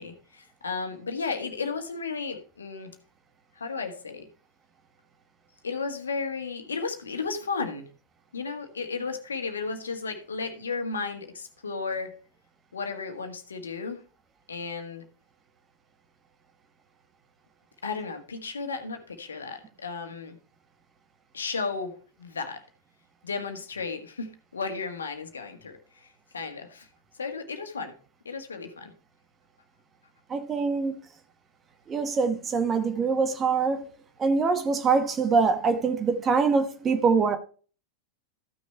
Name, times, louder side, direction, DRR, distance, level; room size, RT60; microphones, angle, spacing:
voice 1, 0.0-2.9 3.6-4.2 5.6-7.9 8.3-12.1 12.7-14.0 14.5-15.0 17.8-20.4 21.3-22.6 23.2-26.1 26.3-26.9 27.2-28.0 28.3-28.9, left 4 dB, 70° left, 1.6 m, -34 dB
voice 2, 30.3-30.9 31.9-33.9 34.2-37.4, right 5 dB, 20° right, 1.4 m, -24 dB
14.5 x 6.3 x 3.2 m
figure-of-eight pair, 90°, 0 cm